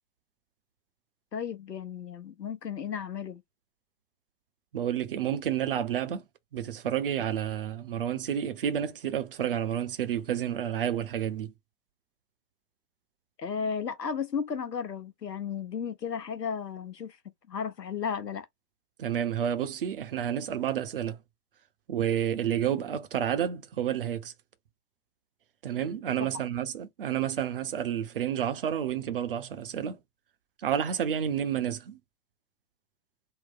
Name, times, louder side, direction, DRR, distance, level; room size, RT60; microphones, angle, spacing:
voice 1, 1.3-3.4 13.4-17.2 17.5-18.5 26.2-26.3, left 6 dB, 75° left, 1.0 m, -34 dB
voice 2, 4.7-6.2 6.5-11.5 19.0-21.2 21.9-24.3 25.6-30.0 30.6-32.0, right 9 dB, 35° right, 0.6 m, -30 dB
3.7 x 2.0 x 3.9 m
figure-of-eight pair, 110°, 49 cm